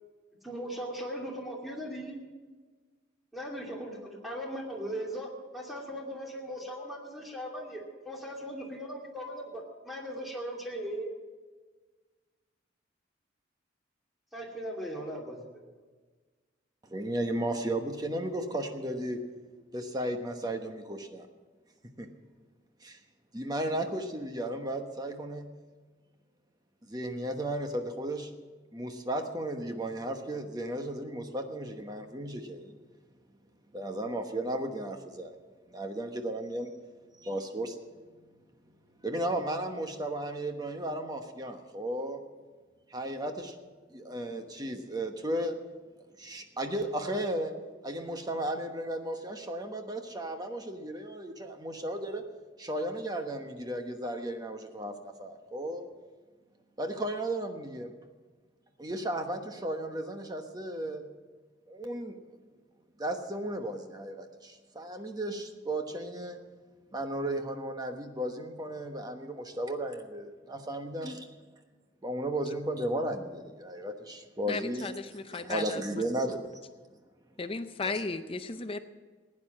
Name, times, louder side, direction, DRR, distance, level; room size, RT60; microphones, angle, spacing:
voice 1, 0.4-2.2 3.3-11.1 14.3-15.4, equal, ahead, -2 dB, 2.6 m, -38 dB
voice 2, 16.9-19.2 19.7-21.3 22.0-22.1 22.8-23.0 23.3-25.5 26.9-28.3 28.7-32.8 33.7-35.3 35.7-36.7 37.2-37.8 39.0-42.2 42.9-43.6 43.9-45.6 46.2-47.5 47.8-52.2 52.6-55.9 56.8-57.9 58.8-61.0 61.7-62.4 63.0-66.4 66.9-71.2 72.0-75.0 75.3-76.7, right 1 dB, 20° right, 5 dB, 1.1 m, -34 dB
voice 3, 74.5-76.0 77.4-78.8, left 3 dB, 30° left, 9 dB, 0.5 m, -35 dB
16.0 x 9.8 x 7.4 m, 1.4 s
head